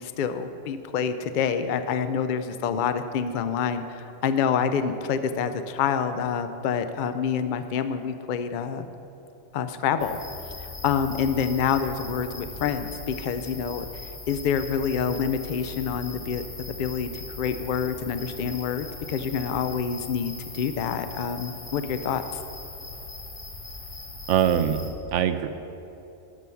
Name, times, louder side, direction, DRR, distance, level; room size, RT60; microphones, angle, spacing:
voice 1, 0.0-8.9 9.5-10.2 10.8-22.2, left 7 dB, 55° left, 10 dB, 0.6 m, -27 dB
sound 1, 10.0-24.9, left 3 dB, 25° left, 1.1 m, -40 dB
voice 2, 24.3-25.5, right 9 dB, 75° right, 10 dB, 0.9 m, -23 dB
13.0 x 4.7 x 6.9 m, 2.8 s
omnidirectional pair, 1.3 m